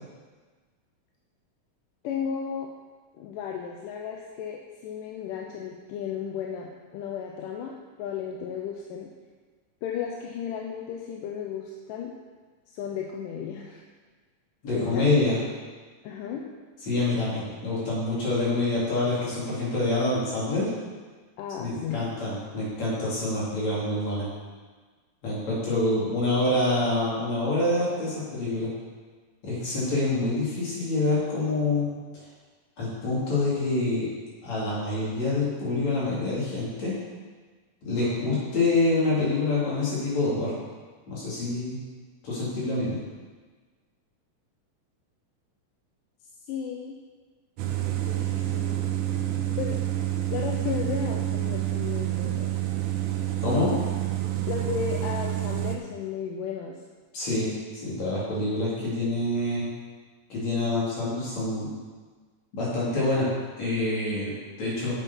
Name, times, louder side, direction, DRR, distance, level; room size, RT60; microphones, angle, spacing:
voice 1, 2.0-2.7 3.2-9.1 9.8-12.1 12.7-13.8 14.7-15.1 16.0-16.5 21.4-22.1 46.5-47.0 47.9-48.9 49.6-49.8 50.3-52.6 54.5-56.8, left 7 dB, 80° left, 0 dB, 2.2 m, -34 dB
voice 2, 14.6-15.4 16.9-20.7 21.6-24.3 25.2-28.7 29.4-31.9 32.8-34.1 34.4-37.0 37.8-40.5 41.1-41.8 42.2-43.0 53.4-53.7 57.1-57.5 57.8-59.7 60.3-61.7 62.5-63.3 63.6-64.9, left 2 dB, 50° left, -7 dB, 3.9 m, -26 dB
sound 1, 47.6-55.8, right 13 dB, 75° right, 2.0 m, -28 dB
8.5 x 7.2 x 5.4 m, 1.4 s
omnidirectional pair, 4.0 m